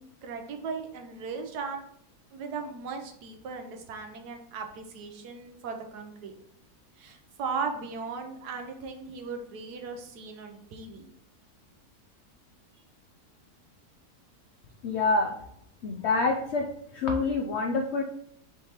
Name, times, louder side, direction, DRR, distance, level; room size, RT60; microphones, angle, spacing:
voice 1, 0.0-1.8 2.3-6.4 7.0-11.1, right 5 dB, 80° right, 4 dB, 1.3 m, -37 dB
voice 2, 14.8-15.3 15.8-16.7 16.9-18.0, left 3 dB, 75° left, 3 dB, 0.6 m, -26 dB
5.4 x 3.3 x 2.9 m, 0.71 s
omnidirectional pair, 1.7 m